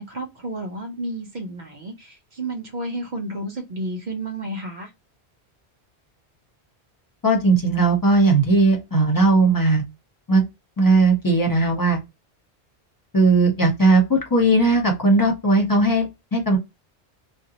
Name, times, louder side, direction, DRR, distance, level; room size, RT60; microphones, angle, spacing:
voice 1, 0.0-4.9, right 1 dB, 45° right, 0.9 m, -31 dB
voice 2, 7.2-9.8 10.3-10.4 10.8-12.0 13.1-16.6, right 2 dB, 20° left, 0.7 m, -18 dB
2.6 x 2.0 x 2.7 m
omnidirectional pair, 1.1 m